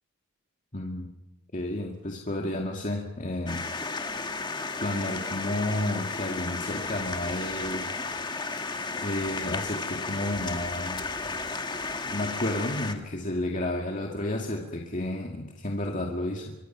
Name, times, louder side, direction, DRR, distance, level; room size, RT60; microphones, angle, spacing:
voice 1, 0.7-1.1 1.5-3.9 4.8-7.9 8.9-11.1 12.1-16.5, left 1 dB, 35° left, 0 dB, 2.2 m, -31 dB
sound 1, 3.5-12.9, left 3 dB, 20° left, 1.7 m, -33 dB
25.0 x 24.5 x 5.9 m, 1.0 s
head